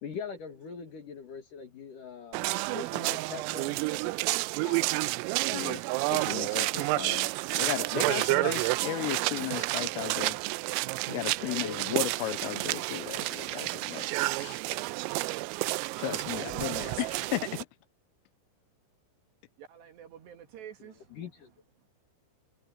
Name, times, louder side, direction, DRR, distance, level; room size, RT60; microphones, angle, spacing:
voice 1, 0.0-4.2 4.6-4.8 11.4-12.0 20.8-21.5, left 6 dB, 55° left, 2.8 m, -42 dB
sound 1, 2.3-17.6, right 22 dB, 85° right, 3.3 m, -30 dB
voice 2, 6.1-7.3 7.6-10.4 11.1-14.1 14.4-14.6 16.0-17.7, left 18 dB, 85° left, 3.3 m, -35 dB
voice 3, 9.0-9.6 19.6-21.0, right 9 dB, 60° right, 4.0 m, -47 dB
omnidirectional pair, 5.9 m